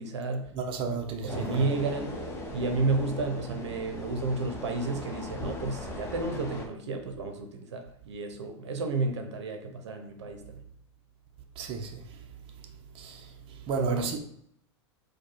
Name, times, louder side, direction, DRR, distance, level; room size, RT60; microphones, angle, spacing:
voice 1, 0.0-0.5 0.8-1.0 1.2-2.1 2.5-10.6 13.7-14.1, right 3 dB, 75° right, 0.8 m, -31 dB
voice 2, 0.5-1.7 11.6-12.0 12.9-14.2, right 5 dB, 35° right, 0.8 m, -33 dB
sound 1, 1.3-6.7, left 2 dB, 20° left, 1.1 m, -39 dB
4.6 x 2.3 x 4.6 m
hypercardioid pair, 105°, 15 cm